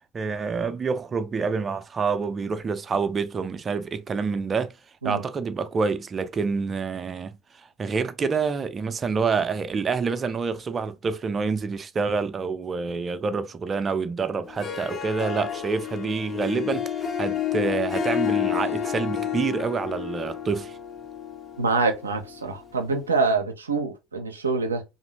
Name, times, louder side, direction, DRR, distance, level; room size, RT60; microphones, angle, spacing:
voice 1, 0.1-4.7 5.0-7.3 7.8-16.9 17.2-20.8, right 5 dB, 30° right, 0.4 m, -27 dB
Harp, 14.4-23.0, left 10 dB, 40° left, 0.8 m, -30 dB
voice 2, 21.6-24.8, right 4 dB, 85° right, 0.5 m, -25 dB
2.7 x 2.5 x 2.9 m
figure-of-eight pair, 65°, 0 cm